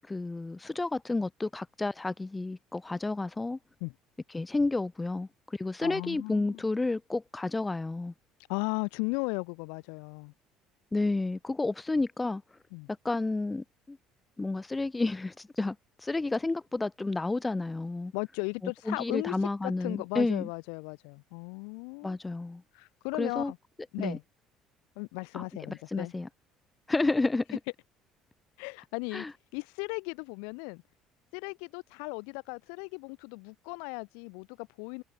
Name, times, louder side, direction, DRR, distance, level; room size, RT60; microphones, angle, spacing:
voice 1, 0.1-3.6 4.3-8.1 10.9-12.4 13.0-14.0 14.4-15.8 16.0-18.1 18.9-20.5 22.0-22.6 23.2-23.5 24.0-24.2 25.3-25.4 25.9-26.3 26.9-27.6 29.1-29.3, left 2 dB, 15° left, 0.3 m, -31 dB
voice 2, 5.8-6.6 8.5-10.3 12.7-12.9 18.1-19.4 19.6-22.2 22.7-23.6 23.9-24.2 25.0-26.1 28.6-29.3 29.5-30.8 31.3-35.0, left 40 dB or more, 85° left, 0.6 m, -36 dB
supercardioid pair, 95°, 0 cm